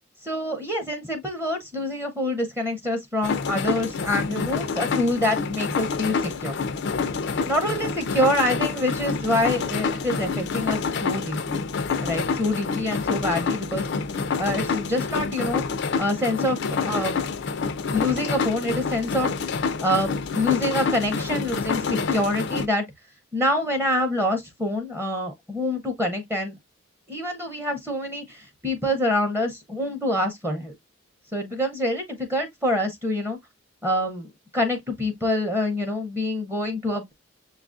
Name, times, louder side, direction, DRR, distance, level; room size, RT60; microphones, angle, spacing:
voice 1, 0.2-6.5 7.5-11.7 12.0-13.9 14.4-15.6 16.0-17.5 17.9-19.3 19.8-22.9 23.3-26.5 27.1-30.7 31.3-33.4 33.8-34.3 34.5-37.1, left 1 dB, 10° right, 0.7 m, -26 dB
sound 1, 3.2-22.7, left 5 dB, 55° left, 0.4 m, -27 dB
6.6 x 2.3 x 2.4 m
head